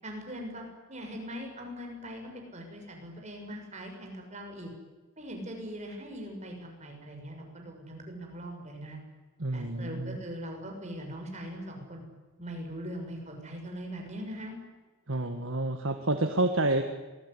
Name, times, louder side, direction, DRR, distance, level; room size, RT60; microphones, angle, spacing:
voice 1, 0.0-4.7 5.2-9.0 9.5-12.0 12.4-14.6, equal, 30° right, 2 dB, 6.7 m, -41 dB
voice 2, 9.4-10.2 15.1-16.8, right 2 dB, 65° right, 6 dB, 1.8 m, -29 dB
26.5 x 20.0 x 10.0 m, 1.2 s
head